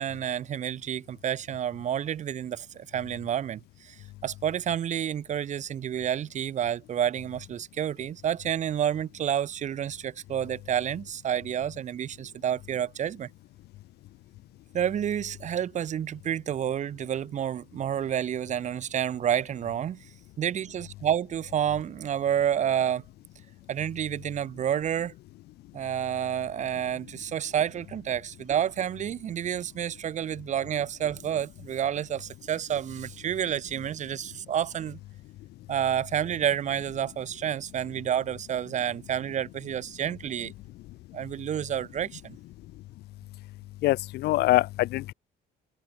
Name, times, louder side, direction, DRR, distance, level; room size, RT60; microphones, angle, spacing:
voice 1, 0.0-13.3 14.7-20.1 20.4-23.0 23.7-25.1 25.7-35.0 35.7-40.5 41.1-42.4, right 9 dB, 45° right, 0.8 m, -29 dB
voice 2, 43.8-45.1, left 17 dB, 75° left, 0.6 m, -24 dB
open air
cardioid pair, 110°, 17 cm